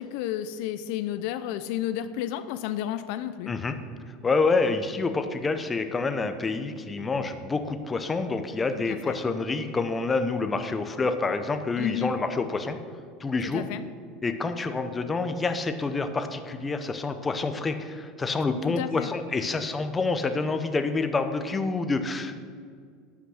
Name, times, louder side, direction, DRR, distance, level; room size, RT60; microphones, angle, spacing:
voice 1, 0.0-3.5 8.9-9.2 11.8-12.2 13.4-13.8 18.6-19.1, left 12 dB, 65° left, 12 dB, 0.4 m, -32 dB
voice 2, 4.2-12.8 13.2-13.6 14.2-22.4, left 3 dB, 15° left, 8 dB, 0.7 m, -27 dB
11.5 x 5.9 x 6.3 m, 2.1 s
supercardioid pair, 150°, 0 cm